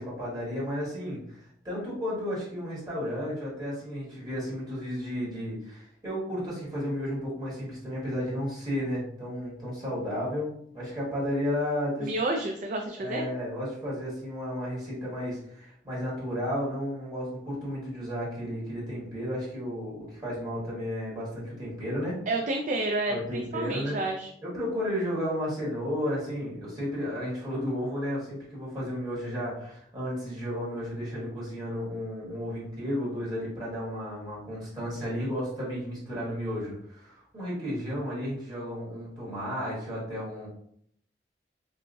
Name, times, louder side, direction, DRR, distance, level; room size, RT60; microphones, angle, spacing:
voice 1, 0.0-12.1 13.0-22.2 23.1-24.1 24.4-40.5, equal, 25° right, -8 dB, 1.5 m, -33 dB
voice 2, 12.0-13.3 22.3-24.3, right 2 dB, 45° right, 2 dB, 0.3 m, -30 dB
4.7 x 2.2 x 2.6 m, 0.68 s
head